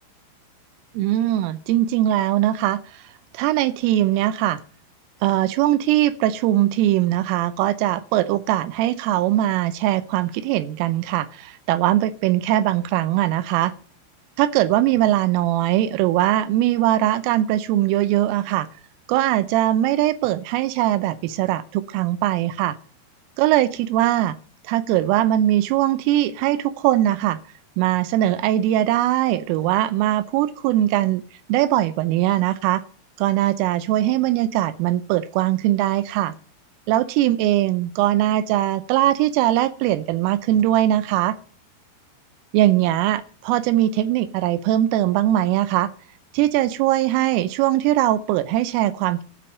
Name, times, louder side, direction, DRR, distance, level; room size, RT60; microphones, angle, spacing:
voice 1, 0.9-3.0 3.3-4.6 5.2-13.7 14.4-18.7 19.1-22.8 23.4-24.4 24.6-27.4 27.8-31.2 31.5-32.8 33.2-36.3 36.9-41.4 42.5-45.9 46.3-49.2, right 13 dB, 85° right, 14 dB, 3.3 m, -21 dB
13.0 x 4.3 x 8.4 m, 0.42 s
omnidirectional pair, 5.8 m